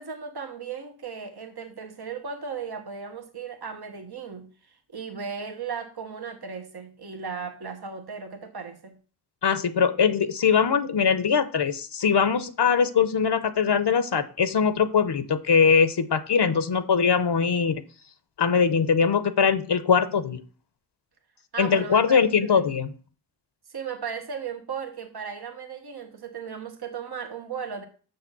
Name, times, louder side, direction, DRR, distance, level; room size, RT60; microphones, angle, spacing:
voice 1, 0.0-9.0 21.5-22.6 23.7-27.8, right 6 dB, 65° right, 1.2 m, -36 dB
voice 2, 9.4-17.8 18.4-20.4 21.6-22.9, left 6 dB, 75° left, 0.8 m, -22 dB
6.7 x 6.5 x 5.9 m
wide cardioid pair, 50°, 40 cm